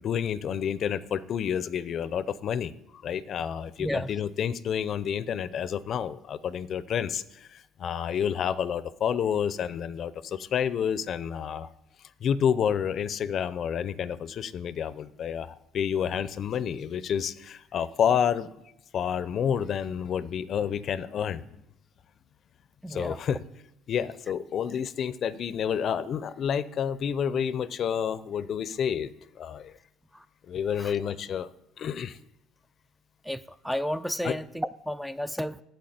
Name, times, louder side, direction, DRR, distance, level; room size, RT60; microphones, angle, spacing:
voice 1, 0.0-2.7 3.0-11.7 12.2-18.5 18.9-21.4 22.9-23.4 23.9-29.1 29.4-29.7 30.5-31.5 31.8-32.2 34.2-34.4, left 8 dB, 50° left, 16 dB, 0.6 m, -29 dB
voice 2, 22.8-23.2 30.8-31.1 33.3-35.6, equal, ahead, 13 dB, 0.4 m, -32 dB
8.6 x 8.1 x 8.0 m, 0.85 s
supercardioid pair, 95°, 0 cm